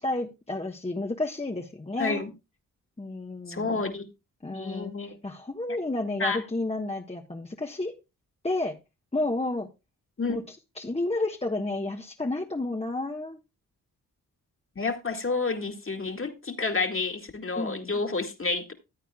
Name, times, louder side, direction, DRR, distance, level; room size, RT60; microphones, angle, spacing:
voice 1, 0.0-2.2 3.0-3.8 4.4-7.9 8.4-8.7 9.1-9.7 10.3-13.4 17.5-17.9, left 2 dB, 15° left, 1.3 m, -31 dB
voice 2, 2.0-2.3 3.5-4.1 4.5-5.2 5.7-5.8 6.2-6.4 10.2-10.4 14.8-18.7, left 3 dB, 35° left, 2.3 m, -30 dB
14.5 x 8.9 x 2.3 m
supercardioid pair, 45°, 37 cm